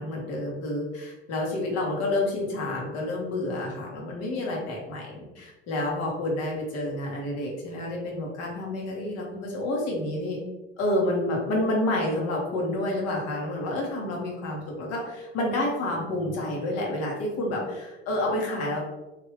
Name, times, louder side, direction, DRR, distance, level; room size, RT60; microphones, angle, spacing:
voice 1, 0.0-10.4 10.8-18.8, left 1 dB, 45° left, -2 dB, 1.3 m, -29 dB
3.3 x 2.8 x 3.3 m, 1.1 s
figure-of-eight pair, 65°, 34 cm